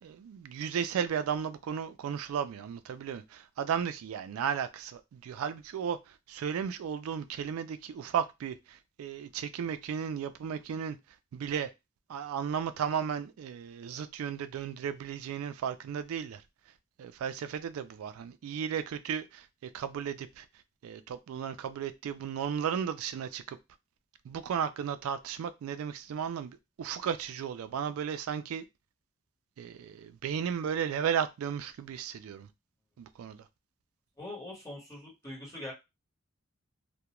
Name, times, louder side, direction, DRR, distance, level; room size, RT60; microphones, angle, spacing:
voice 1, 0.0-11.0 11.3-11.7 12.1-16.4 17.0-20.5 20.8-23.6 24.2-28.6 29.6-32.5 33.0-33.5, right 8 dB, 85° right, 0.3 m, -34 dB
voice 2, 34.2-35.7, left 1 dB, 15° left, 1.1 m, -42 dB
2.3 x 2.1 x 2.9 m
head